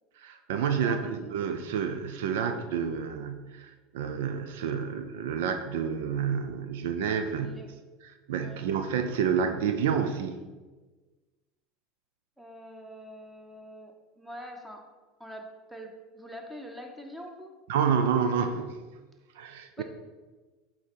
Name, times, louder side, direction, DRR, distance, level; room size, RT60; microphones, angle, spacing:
voice 1, 0.2-7.6 8.3-10.4 17.7-18.7 19.4-19.8, right 7 dB, 80° right, 8 dB, 0.5 m, -29 dB
voice 2, 12.4-14.9 15.2-17.5 19.8-19.9, equal, 10° right, 3 dB, 1.3 m, -44 dB
8.2 x 4.2 x 4.5 m, 1.3 s
supercardioid pair, 100°, 0 cm